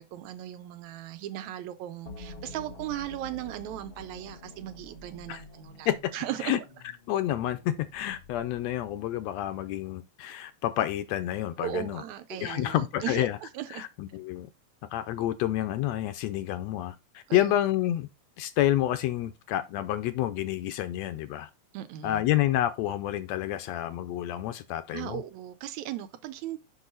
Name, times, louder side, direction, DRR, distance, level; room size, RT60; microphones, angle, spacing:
voice 1, 0.0-6.7 11.6-13.9 17.3-17.6 21.7-22.2 24.9-26.6, right 12 dB, 80° right, 2.1 m, -37 dB
sound 1, 2.1-9.0, left 2 dB, 35° left, 0.9 m, -48 dB
voice 2, 7.1-12.0 12.4-13.4 13.7-14.5 14.9-18.1 18.4-21.5 22.0-25.2, left 13 dB, 75° left, 1.7 m, -29 dB
6.0 x 5.5 x 3.8 m
omnidirectional pair, 3.3 m